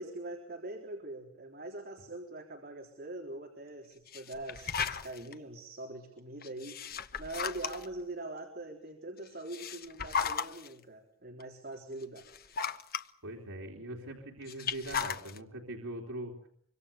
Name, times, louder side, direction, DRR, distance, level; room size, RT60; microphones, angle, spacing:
voice 1, 0.0-12.7, right 2 dB, 45° right, 1 dB, 3.8 m, -43 dB
sound 1, 4.1-5.3 6.4-8.0 9.3-10.7 11.4-11.5 12.0-13.0 14.4-15.4, left 6 dB, 45° left, 1.1 m, -35 dB
voice 2, 13.2-16.5, right 1 dB, 80° right, -1 dB, 3.5 m, -42 dB
25.5 x 24.5 x 7.0 m, 0.66 s
head